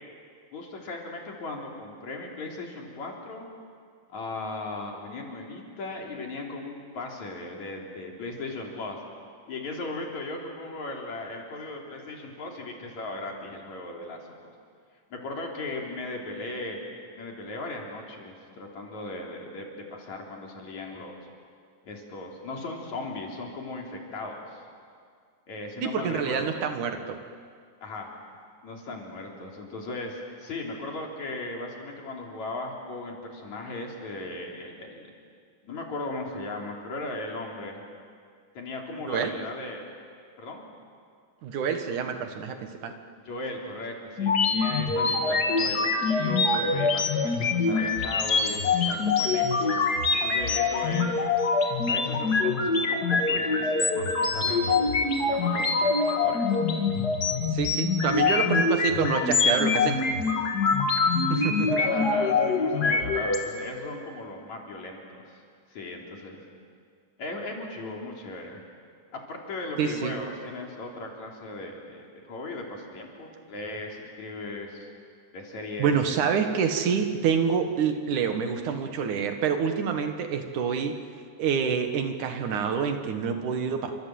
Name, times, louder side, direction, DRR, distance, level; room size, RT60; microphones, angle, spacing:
voice 1, 0.5-3.5 4.1-9.0 9.5-14.5 15.1-16.8 17.2-21.2 21.9-24.6 25.5-26.5 27.8-28.1 28.6-35.1 35.6-37.8 38.5-39.8 40.4-40.6 43.2-49.8 50.2-51.1 51.9-56.6 58.0-58.5 61.8-65.4 65.7-66.4 67.2-68.6 69.1-74.9 75.3-76.0, left 2 dB, 65° left, 0 dB, 4.9 m, -37 dB
voice 2, 25.8-27.2 39.1-39.3 41.4-42.6 42.8-42.9 57.5-60.0 61.3-61.8 69.8-70.1 75.8-80.9 81.4-83.9, right 6 dB, 75° right, 6 dB, 3.1 m, -27 dB
sound 1, 44.2-63.4, left 4 dB, 35° left, 2.3 m, -24 dB
29.5 x 25.5 x 7.9 m, 2.1 s
omnidirectional pair, 3.5 m